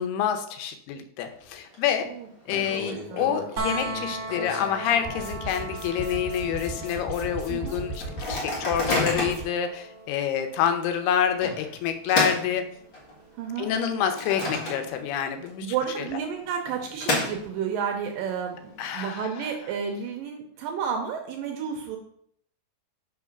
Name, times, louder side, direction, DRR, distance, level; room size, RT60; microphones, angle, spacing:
voice 1, 0.0-2.1 2.5-12.6 13.6-15.7 16.0-16.1 18.8-19.3, left 8 dB, 85° left, 7 dB, 2.7 m, -27 dB
Microwave oven, 1.2-1.7 2.0-2.1 2.5-5.5 6.0-6.1 6.3-6.7 7.2-7.3 8.0-9.5 10.1-10.3 11.4-13.2 13.7-15.2 15.5-15.6 16.4-17.8, left 2 dB, 45° left, 1.7 m, -31 dB
voice 2, 2.0-3.3 7.5-7.8 13.4-13.7 15.6-22.0, right 7 dB, 80° right, 3 dB, 2.1 m, -32 dB
sound 1, 3.6-15.4 17.3-17.4, right 2 dB, 55° right, 2.1 m, -40 dB
sound 2, 5.1-9.4, right 1 dB, 60° left, 3.9 m, -37 dB
5.6 x 4.7 x 5.9 m, 0.68 s
omnidirectional pair, 4.5 m